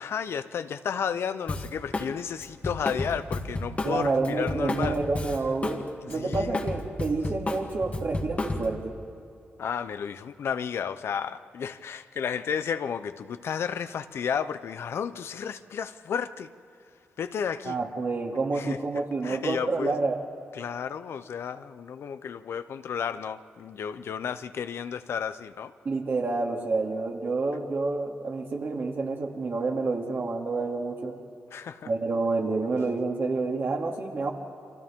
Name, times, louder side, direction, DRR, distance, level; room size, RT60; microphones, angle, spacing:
voice 1, 0.0-5.0 6.0-6.6 9.6-16.5 17.2-17.8 18.5-18.8 19.2-19.9 20.5-25.7 31.5-31.9, left 7 dB, 75° left, 11 dB, 0.7 m, -32 dB
Drum kit, 1.5-2.1 2.4-5.8 6.1-8.8, left 2 dB, 35° left, 1.9 m, -31 dB
voice 2, 3.8-5.8 6.1-9.0 17.6-20.2 25.8-31.2 31.9-34.3, right 3 dB, 55° right, 0 dB, 2.6 m, -28 dB
29.5 x 24.5 x 3.7 m, 2.5 s
cardioid pair, 90°, 4 cm